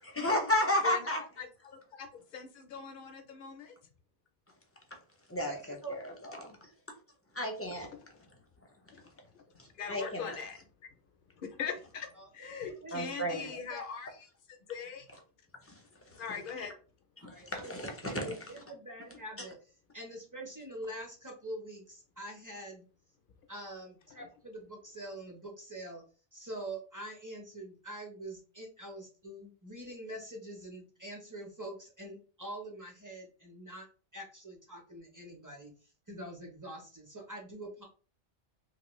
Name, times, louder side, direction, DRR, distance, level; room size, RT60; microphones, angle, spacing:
voice 1, 0.0-1.2 5.3-5.5 5.9-6.6 7.3-7.9 9.9-10.4 12.9-13.5 15.6-15.8 16.1-16.2 17.2-18.4, left 1 dB, 15° left, 0.6 m, -32 dB
voice 2, 0.8-3.8 7.9-8.0 8.9-9.0 9.3-9.4 9.7-10.9 11.4-14.1 14.5-15.1 16.2-16.7 24.2-24.3, left 6 dB, 60° left, 0.7 m, -41 dB
voice 3, 5.4-6.0 12.2-12.3 12.6-13.4 13.7-13.9 17.2-17.7 18.0-19.6 19.9-22.9 23.5-26.0 26.3-33.9 34.1-37.9, right 1 dB, 20° right, 0.7 m, -45 dB
2.9 x 2.8 x 3.0 m
omnidirectional pair, 1.1 m